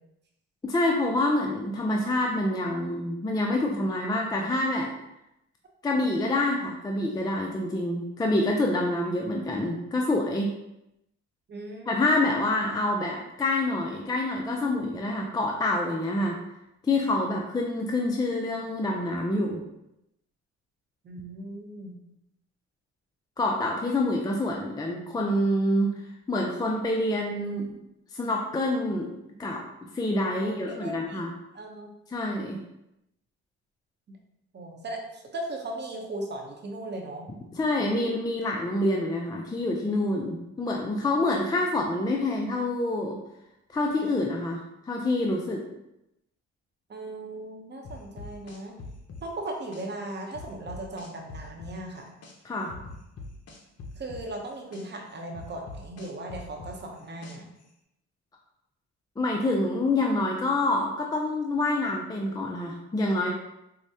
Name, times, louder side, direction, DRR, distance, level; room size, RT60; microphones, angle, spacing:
voice 1, 0.6-4.9 5.8-10.5 11.9-16.4 16.8-19.6 23.4-25.9 26.3-27.7 28.1-29.1 29.4-29.6 29.9-31.3 32.1-32.6 37.6-43.2 43.7-45.6 52.4-52.7 59.2-63.3, left 2 dB, 15° left, 0 dB, 0.4 m, -27 dB
voice 2, 11.5-12.1 21.0-21.9 30.3-31.9 34.5-37.3 46.9-48.7 49.2-52.1 54.0-57.5, right 1 dB, 35° right, 0 dB, 0.7 m, -38 dB
sound 1, 47.8-49.9 50.3-52.4 52.7-54.9 55.3-57.6, left 3 dB, 55° left, 0.7 m, -42 dB
4.7 x 2.0 x 2.7 m, 0.87 s
cardioid pair, 90°, 30 cm